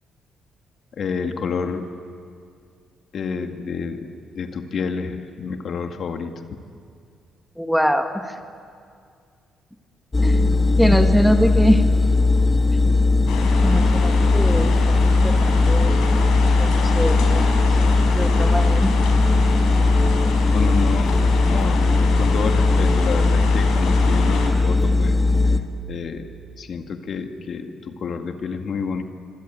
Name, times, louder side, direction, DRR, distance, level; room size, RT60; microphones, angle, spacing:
voice 1, 1.0-1.9 3.1-4.1 4.4-6.3 20.5-25.5 25.9-26.3 26.6-29.0, left 5 dB, 55° left, 5 dB, 2.1 m, -29 dB
voice 2, 7.6-8.2 10.2-10.4 10.8-11.8 13.6-16.0 16.6-17.6 18.1-19.0, equal, ahead, 5 dB, 1.9 m, -22 dB
sound 1, 10.1-25.6, left 3 dB, 20° left, 1.8 m, -18 dB
sound 2, 13.3-24.5, left 5 dB, 90° left, 5.4 m, -29 dB
25.5 x 25.5 x 9.1 m, 2.2 s
cardioid pair, 90°, 0 cm